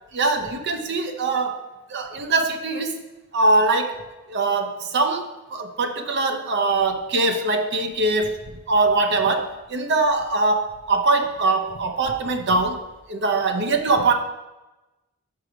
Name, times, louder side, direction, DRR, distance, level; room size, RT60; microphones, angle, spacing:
voice 1, 0.1-3.0 3.3-4.0 4.3-8.4 8.7-12.8 13.1-14.1, right 3 dB, 55° right, 7 dB, 0.6 m, -22 dB
5.9 x 4.7 x 5.0 m, 1.1 s
head